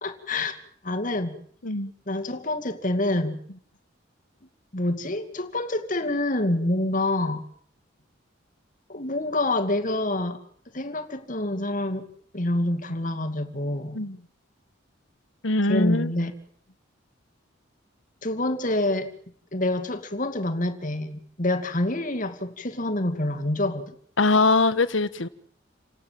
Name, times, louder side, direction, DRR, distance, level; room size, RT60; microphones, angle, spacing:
voice 1, 0.0-0.6 0.8-1.4 2.1-3.4 4.7-7.4 8.9-10.4 10.7-12.1 12.3-14.0 15.6-16.3 18.2-19.1 19.5-23.9, left 1 dB, 40° left, 2.4 m, -27 dB
voice 2, 15.4-16.1 24.2-25.3, left 3 dB, 70° left, 1.5 m, -22 dB
29.0 x 18.0 x 7.6 m
head